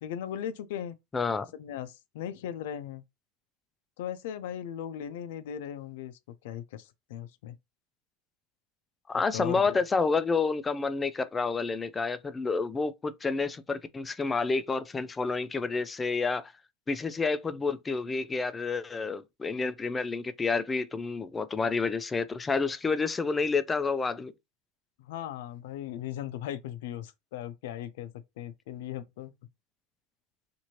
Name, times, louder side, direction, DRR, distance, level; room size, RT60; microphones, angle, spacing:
voice 1, 0.0-0.9 1.5-3.0 4.0-7.6 9.3-9.8 25.0-28.1 28.4-29.3, left 10 dB, 75° left, 0.5 m, -38 dB
voice 2, 1.1-1.5 9.1-16.5 16.9-24.3, left 4 dB, 20° left, 0.4 m, -29 dB
2.7 x 2.6 x 2.9 m
hypercardioid pair, 100°, 0 cm